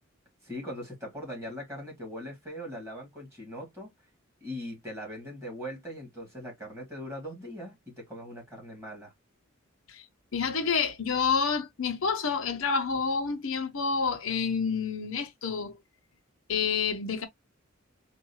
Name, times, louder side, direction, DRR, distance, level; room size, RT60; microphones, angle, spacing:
voice 1, 0.4-3.9 4.4-9.1, equal, 15° right, 2.2 m, -40 dB
voice 2, 10.3-15.8 16.5-17.3, left 5 dB, 75° left, 0.8 m, -28 dB
4.5 x 2.6 x 2.9 m
head